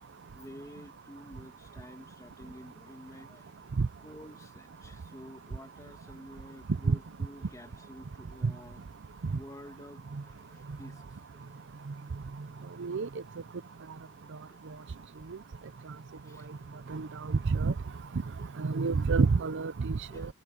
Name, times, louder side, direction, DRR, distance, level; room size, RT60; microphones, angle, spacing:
voice 1, 0.3-3.5 4.0-8.8 9.1-11.6 14.5-14.7 16.2-16.9 18.8-18.9 20.0-20.3, equal, 15° left, 2.3 m, -50 dB
voice 2, 16.9-17.7 18.6-20.3, right 4 dB, 55° right, 0.5 m, -28 dB
head